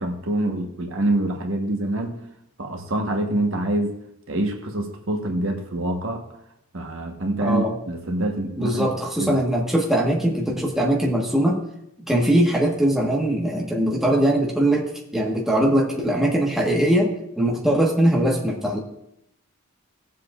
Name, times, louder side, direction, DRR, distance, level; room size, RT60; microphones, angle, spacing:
voice 1, 0.0-2.2 2.6-4.0 4.3-6.3 6.7-8.9 9.2-9.4, right 1 dB, 65° right, 3 dB, 1.2 m, -25 dB
voice 2, 7.4-7.7 8.6-11.6 12.1-18.8, right 1 dB, ahead, -2 dB, 1.3 m, -21 dB
18.5 x 7.5 x 2.5 m, 0.78 s
head